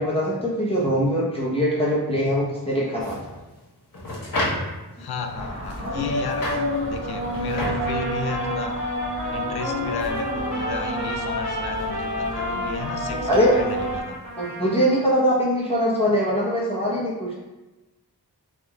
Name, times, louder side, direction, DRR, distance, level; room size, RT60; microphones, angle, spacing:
voice 1, 0.0-3.2 13.3-13.6 14.4-17.3, equal, 15° left, -7 dB, 0.9 m, -22 dB
sound 1, 3.0-14.6, left 1 dB, 55° left, 1.1 m, -35 dB
voice 2, 5.0-6.6 6.9-8.8 9.3-14.2, left 4 dB, 70° left, 6 dB, 0.5 m, -34 dB
sound 2, 5.3-14.0, equal, 35° right, 1.0 m, -29 dB
Trumpet, 7.7-15.1, left 1 dB, 90° left, 1.3 m, -34 dB
3.6 x 2.5 x 3.4 m, 1.1 s
wide cardioid pair, 45°, 39 cm